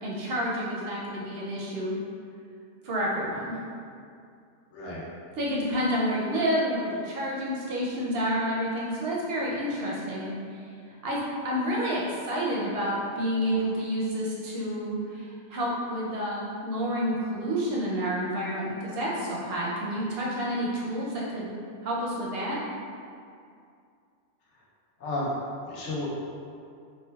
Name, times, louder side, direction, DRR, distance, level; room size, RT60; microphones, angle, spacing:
voice 1, 0.0-1.9 2.8-3.6 5.4-10.3 11.0-21.5 21.8-22.6, equal, 65° right, -5 dB, 0.7 m, -29 dB
voice 2, 25.6-26.1, left 2 dB, 75° left, -5 dB, 1.0 m, -32 dB
4.4 x 2.2 x 2.2 m, 2.4 s
omnidirectional pair, 1.2 m